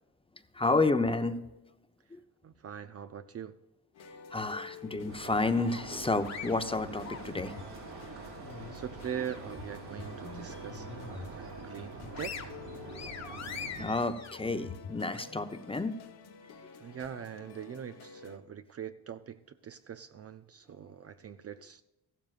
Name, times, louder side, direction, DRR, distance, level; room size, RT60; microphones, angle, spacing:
voice 1, 0.5-1.4 2.1-2.2 4.3-7.5 10.2-10.5 12.9-13.4 13.8-15.9, left 3 dB, 15° left, 9 dB, 0.7 m, -30 dB
voice 2, 2.4-3.6 8.1-8.4 8.7-12.5 16.8-21.8, right 8 dB, 40° right, 10 dB, 0.5 m, -42 dB
sound 1, 3.9-18.4, left 6 dB, 70° left, 1.3 m, -52 dB
sound 2, 5.1-13.9, right 4 dB, 80° right, 3.6 m, -45 dB
sound 3, 5.7-7.7 8.2-9.6 10.0-10.1 10.6-11.4 11.8-15.3, left 6 dB, 40° left, 1.3 m, -44 dB
14.5 x 12.5 x 2.5 m, 0.98 s
cardioid pair, 115°, 40 cm